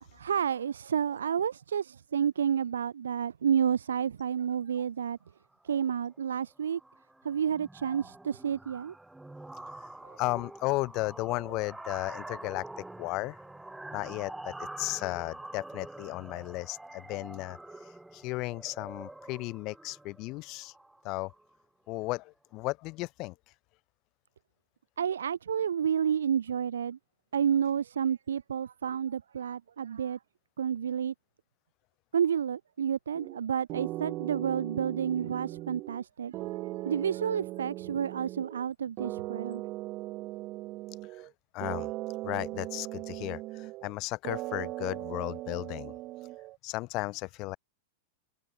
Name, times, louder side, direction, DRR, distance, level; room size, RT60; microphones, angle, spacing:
voice 1, 0.1-5.2 5.6-6.8 7.2-8.9 10.0-10.2 25.0-27.0 27.3-30.2 30.6-31.1 32.1-36.3 36.8-39.6, right 8 dB, 80° right, 1.4 m, -30 dB
sound 1, 5.5-5.8 6.1-6.4 6.7-21.6, right 2 dB, 5° right, 7.8 m, -46 dB
voice 2, 10.2-13.4 13.9-17.6 18.1-20.7 21.0-21.3 21.9-23.3 41.2-41.3 41.5-41.9 42.2-45.9 46.6-47.6, left 22 dB, 45° left, 0.7 m, -35 dB
sound 2, 33.1-33.4 33.7-36.0 36.3-38.7 39.0-41.3 41.6-43.9 44.2-46.6, right 17 dB, 40° right, 0.8 m, -39 dB
hypercardioid pair, 105°, 0 cm